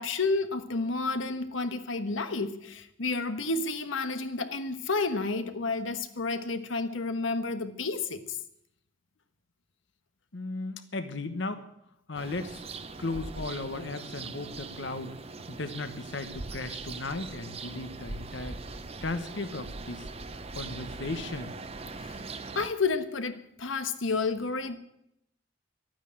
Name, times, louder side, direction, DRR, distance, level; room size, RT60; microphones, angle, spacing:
voice 1, 0.0-8.2 22.0-22.2 22.5-24.8, left 3 dB, 85° left, 1.2 m, -30 dB
voice 2, 10.3-11.6 12.1-12.7 13.0-15.1 15.5-18.6 19.0-20.1 20.5-21.5, left 2 dB, 65° left, 1.1 m, -36 dB
sound 1, 12.1-22.7, right 3 dB, 30° right, 0.8 m, -41 dB
12.5 x 9.3 x 8.7 m
head